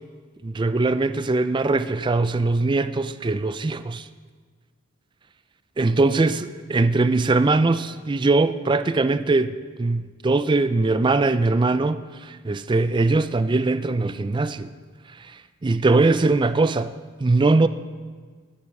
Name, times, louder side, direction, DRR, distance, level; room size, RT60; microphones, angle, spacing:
voice 1, 0.4-4.1 5.8-14.7 15.2-16.9 17.2-17.7, right 3 dB, 25° right, 0.3 m, -21 dB
18.5 x 8.4 x 4.8 m
head